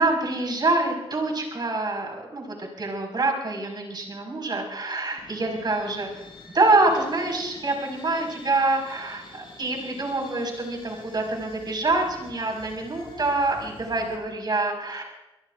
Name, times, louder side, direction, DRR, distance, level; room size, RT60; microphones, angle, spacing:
voice 1, 0.0-6.1 6.5-15.0, right 2 dB, 45° right, 0 dB, 5.5 m, -26 dB
sound 1, 5.2-14.2, left 3 dB, 55° left, 5.8 m, -47 dB
26.0 x 21.0 x 2.6 m, 1.0 s
cardioid pair, 80°, 11 cm